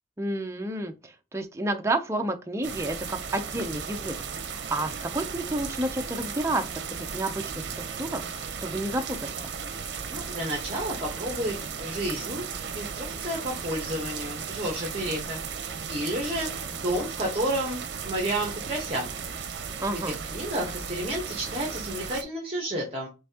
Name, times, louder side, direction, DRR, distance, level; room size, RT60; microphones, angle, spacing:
voice 1, 0.2-4.1 4.5-6.6 7.0-7.4 7.8-9.2 19.8-20.2, right 1 dB, 15° right, 0.5 m, -30 dB
sound 1, 2.6-22.2, right 6 dB, 70° right, 0.7 m, -36 dB
voice 2, 10.1-12.4 12.7-15.4 15.9-19.1 20.0-23.1, right 1 dB, 30° right, 1.1 m, -31 dB
5.5 x 3.4 x 2.8 m
head